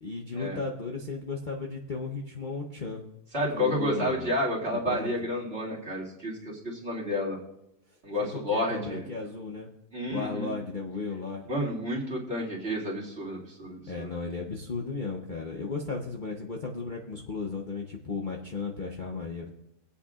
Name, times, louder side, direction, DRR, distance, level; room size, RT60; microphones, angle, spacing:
voice 1, 0.0-3.0 3.5-4.3 4.7-5.3 8.2-9.7 10.1-11.5 13.9-19.6, left 4 dB, 40° left, -1 dB, 0.8 m, -35 dB
voice 2, 3.3-7.4 8.0-9.0 9.9-10.5 11.5-14.1, left 1 dB, 40° right, -4 dB, 2.5 m, -30 dB
22.5 x 8.3 x 2.4 m, 0.86 s
omnidirectional pair, 1.6 m